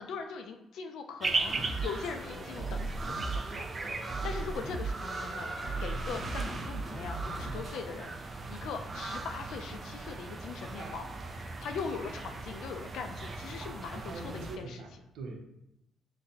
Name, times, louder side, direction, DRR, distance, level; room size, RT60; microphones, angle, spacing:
voice 1, 0.0-5.5 5.8-14.8, left 5 dB, 80° left, 6 dB, 0.4 m, -41 dB
sound 1, 1.2-14.6, right 3 dB, 35° right, 0.4 m, -38 dB
sound 2, 1.5-7.7, right 3 dB, 5° right, 0.9 m, -38 dB
voice 2, 13.9-15.4, right 3 dB, 90° right, 1 dB, 0.6 m, -43 dB
3.9 x 2.2 x 2.8 m, 0.84 s
cardioid pair, 90°, 0 cm